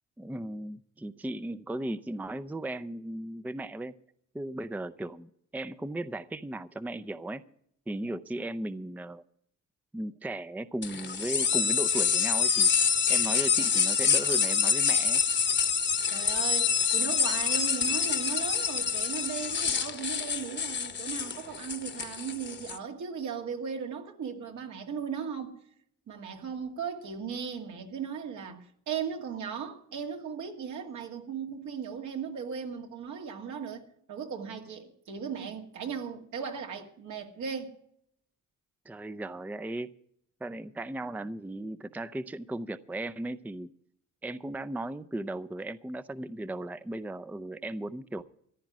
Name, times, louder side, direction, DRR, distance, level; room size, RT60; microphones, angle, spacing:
voice 1, 0.2-3.9 4.3-7.4 7.9-9.2 9.9-12.7 13.1-15.2 38.9-39.9 40.4-43.7 44.2-48.2, right 1 dB, 5° right, 0.5 m, -36 dB
sound 1, 10.8-22.8, left 6 dB, 35° left, 1.0 m, -27 dB
voice 2, 16.1-25.6 26.1-33.8 34.1-37.7, right 7 dB, 70° right, 2.2 m, -37 dB
14.5 x 10.5 x 6.1 m
cardioid pair, 90°, 30 cm